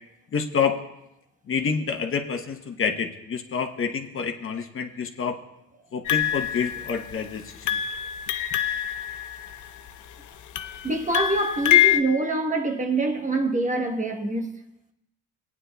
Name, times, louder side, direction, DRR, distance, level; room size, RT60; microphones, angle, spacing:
voice 1, 0.3-0.8 1.5-5.4 5.9-7.8, left 6 dB, 45° left, 0.9 m, -28 dB
sound 1, 6.1-7.2 7.7-9.9 10.6-12.0, left 11 dB, 75° left, 0.6 m, -24 dB
voice 2, 10.8-14.5, right 2 dB, 25° right, 1.1 m, -25 dB
19.0 x 9.6 x 2.3 m
cardioid pair, 90°, 30 cm